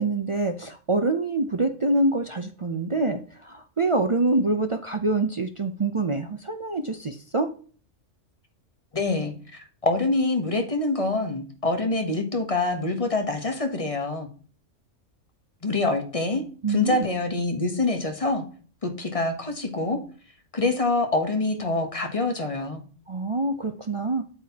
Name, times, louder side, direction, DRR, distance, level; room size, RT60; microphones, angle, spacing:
voice 1, 0.0-7.5 16.6-17.1 23.1-24.2, right 2 dB, 45° right, 0.4 m, -25 dB
voice 2, 8.9-14.3 15.6-16.4 16.7-18.4 18.8-20.0 20.5-22.8, left 2 dB, 30° left, 1.0 m, -25 dB
8.2 x 7.8 x 2.8 m
omnidirectional pair, 1.3 m